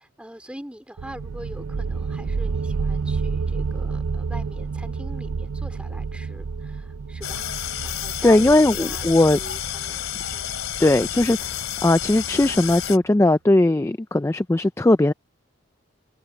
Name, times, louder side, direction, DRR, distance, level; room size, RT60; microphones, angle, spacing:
voice 1, 0.0-7.4 7.8-9.1 9.4-10.5, equal, 5° right, 4.0 m, -43 dB
sound 1, 1.0-12.4, right 4 dB, 90° right, 0.5 m, -30 dB
sound 2, 7.2-13.0, left 10 dB, 85° left, 2.9 m, -30 dB
voice 2, 8.2-9.4 10.8-11.4 11.8-15.1, left 2 dB, 15° left, 0.3 m, -18 dB
head